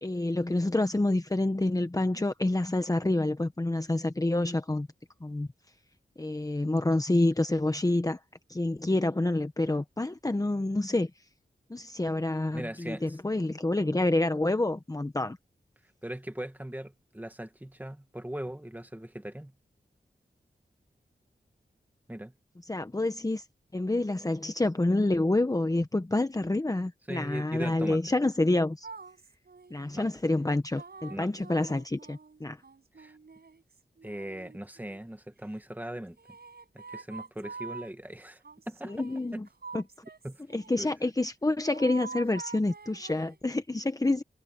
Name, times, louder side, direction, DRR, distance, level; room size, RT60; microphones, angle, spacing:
voice 1, 0.0-4.9 5.2-5.5 6.2-8.2 8.5-11.1 11.7-15.4 22.7-23.4 23.7-28.9 29.7-32.6 38.9-39.5 39.7-39.8 40.5-44.2, left 2 dB, 20° left, 1.1 m, -28 dB
voice 2, 12.5-13.2 16.0-19.5 22.1-22.3 27.1-28.0 29.9-30.1 31.1-31.3 33.0-33.2 34.0-36.2 36.7-38.9 39.3-39.4 40.2-40.4 40.8-40.9, right 1 dB, 10° right, 2.0 m, -39 dB
sound 1, 28.8-30.0 30.8-35.1 36.2-37.9 38.4-40.8 41.7-43.5, right 4 dB, 70° right, 6.5 m, -46 dB
wide cardioid pair, 70°, 17 cm